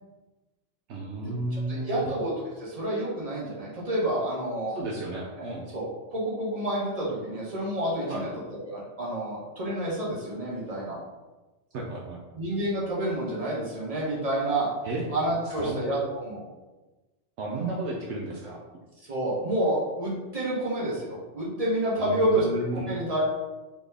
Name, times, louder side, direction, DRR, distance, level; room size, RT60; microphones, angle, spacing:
voice 1, 0.9-2.0 4.7-5.6 8.1-8.2 11.7-12.2 14.8-15.0 15.6-15.8 17.4-18.6 22.0-22.9, right 2 dB, 70° right, -1 dB, 0.9 m, -33 dB
voice 2, 1.5-2.3 2.6-4.8 5.4-5.5 5.7-5.9 6.1-8.3 8.6-11.0 12.3-14.7 15.1-16.5 17.5-17.7 19.0-23.2, right 1 dB, 30° right, -6 dB, 1.4 m, -29 dB
4.1 x 3.5 x 3.3 m, 1.2 s
omnidirectional pair, 1.2 m